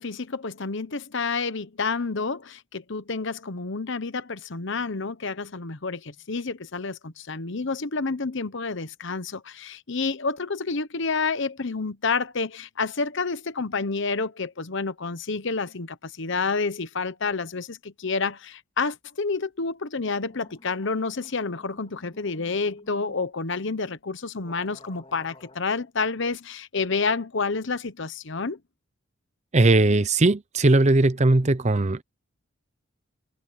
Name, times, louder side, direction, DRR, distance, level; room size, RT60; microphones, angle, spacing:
voice 1, 0.0-28.6, left 4 dB, 65° left, 1.0 m, -29 dB
sound 1, 19.7-19.8 20.0-23.2 24.0-24.1 24.4-25.6, left 2 dB, 30° left, 3.8 m, -52 dB
voice 2, 29.5-32.0, right 2 dB, 35° right, 0.8 m, -19 dB
head